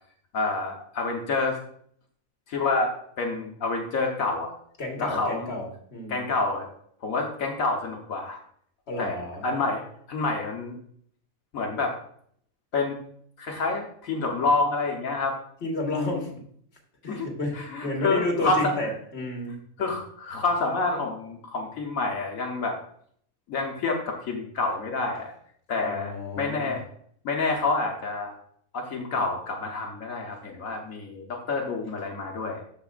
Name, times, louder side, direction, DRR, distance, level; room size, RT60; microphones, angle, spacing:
voice 1, 0.3-1.6 2.5-2.9 3.2-4.5 5.0-5.5 6.1-6.7 7.0-8.4 9.0-9.2 9.4-9.8 10.1-10.8 11.5-11.9 12.7-13.0 13.4-15.3 15.9-16.3 17.1-17.3 17.5-18.9 19.8-22.7 23.5-25.3 25.7-26.8 27.2-28.4 28.7-32.6, left 3 dB, 80° left, 0 dB, 1.4 m, -28 dB
voice 2, 4.8-6.2 8.9-9.4 15.6-16.3 17.0-19.6 25.8-26.8, left 2 dB, 50° left, 1 dB, 1.7 m, -31 dB
13.0 x 4.8 x 2.4 m, 0.63 s
omnidirectional pair, 1.4 m